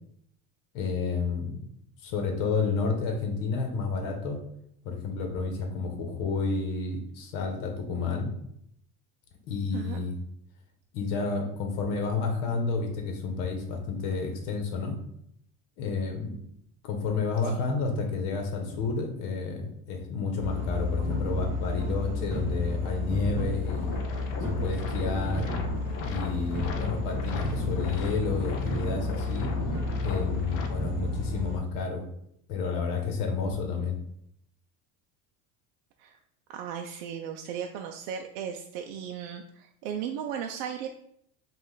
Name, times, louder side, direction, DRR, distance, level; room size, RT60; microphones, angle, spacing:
voice 1, 0.7-1.7 2.0-4.4 4.8-8.3 9.5-10.2 10.9-14.9 15.8-16.4 16.8-24.0 24.6-25.5 26.0-29.5 30.0-32.0 32.5-34.0, left 4 dB, 60° left, 3 dB, 1.1 m, -30 dB
sound 1, 20.4-31.6, left 2 dB, 10° right, 1.4 m, -31 dB
sound 2, 23.7-30.7, left 5 dB, 40° left, 0.5 m, -39 dB
voice 2, 36.5-40.9, right 8 dB, 65° right, 3 dB, 0.5 m, -36 dB
5.1 x 2.5 x 3.8 m, 0.73 s
cardioid pair, 165°, 37 cm